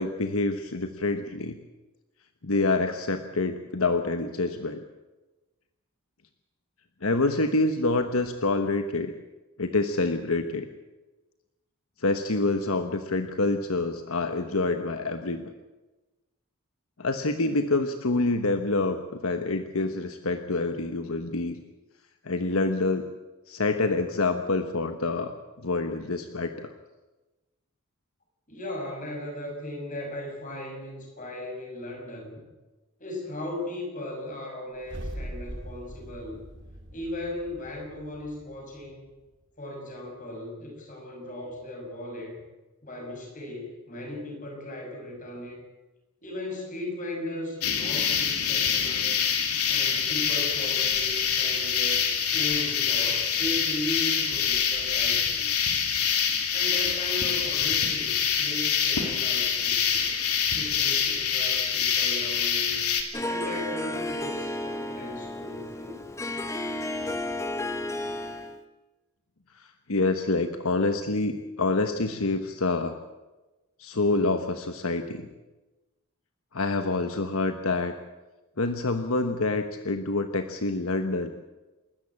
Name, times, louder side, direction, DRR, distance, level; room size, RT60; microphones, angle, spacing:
voice 1, 0.0-1.6 2.4-4.8 7.0-9.1 9.6-10.7 12.0-15.5 17.0-21.6 22.2-23.0 23.5-25.3 25.6-26.7 69.5-73.0 73.8-75.3 76.5-77.9 78.6-81.3, left 3 dB, 70° left, 7 dB, 1.2 m, -27 dB
voice 2, 28.5-32.4 33.0-36.4 36.9-39.1 39.6-42.4 42.8-45.6 46.2-49.2 49.7-55.5 56.5-60.1 60.5-62.8 63.2-66.1, left 1 dB, 35° left, 1 dB, 6.6 m, -37 dB
sound 1, 34.8-39.1, right 1 dB, 55° right, 2.1 m, -41 dB
sound 2, 47.6-63.0, left 7 dB, 90° left, 3.1 m, -25 dB
Harp, 63.1-68.6, left 1 dB, 15° left, 1.3 m, -32 dB
29.0 x 13.5 x 8.7 m, 1.1 s
head